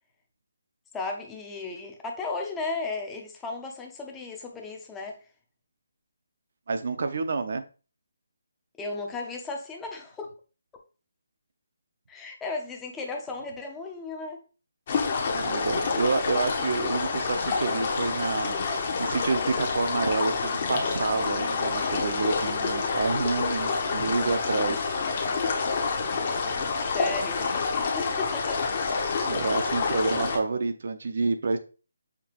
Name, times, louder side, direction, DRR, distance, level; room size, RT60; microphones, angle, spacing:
voice 1, 0.9-5.2 8.8-10.3 12.1-14.4 26.8-27.5 27.7-28.6, left 3 dB, 5° left, 1 dB, 0.6 m, -35 dB
voice 2, 6.7-7.6 15.3-24.9 29.2-31.6, right 4 dB, 55° right, 9 dB, 0.6 m, -29 dB
sound 1, 14.9-30.4, left 4 dB, 35° left, 0.8 m, -28 dB
5.9 x 2.8 x 3.0 m, 0.36 s
hypercardioid pair, 170°, 0 cm